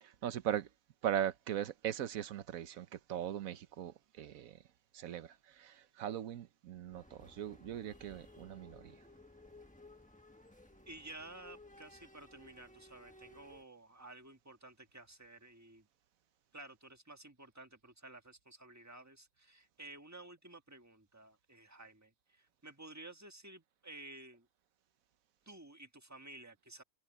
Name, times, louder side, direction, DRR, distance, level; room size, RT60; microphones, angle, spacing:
voice 1, 0.0-0.7 1.0-4.6 4.9-8.9, right 10 dB, 80° right, 1.3 m, -39 dB
sound 1, 6.9-13.6, left 2 dB, 5° left, 1.3 m, -58 dB
voice 2, 10.9-15.9 16.5-24.5 25.4-26.8, right 2 dB, 10° right, 1.7 m, -53 dB
omnidirectional pair, 1.4 m